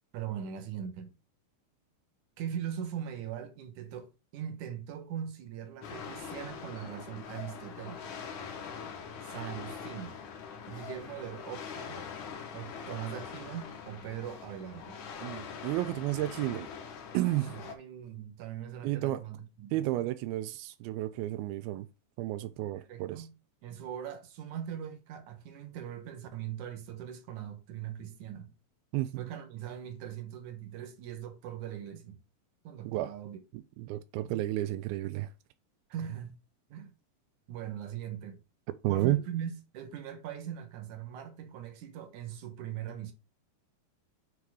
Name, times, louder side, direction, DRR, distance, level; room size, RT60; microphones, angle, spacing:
voice 1, 0.1-1.1 2.4-8.2 9.2-10.2 10.7-12.0 12.5-15.0 17.5-19.9 22.7-23.4 23.6-28.5 29.2-32.2 32.6-33.4 35.9-36.4 36.7-36.9 37.5-38.4 38.9-43.1, right 9 dB, 70° right, 2.0 m, -40 dB
sound 1, 5.8-17.8, left 6 dB, 65° left, 2.4 m, -43 dB
voice 2, 15.2-16.7 17.1-17.5 18.8-19.2 19.7-21.9 22.2-23.2 28.9-29.3 32.9-33.1 33.8-35.3 38.8-39.2, right 16 dB, 90° right, 2.5 m, -31 dB
8.0 x 3.4 x 4.8 m
omnidirectional pair, 4.3 m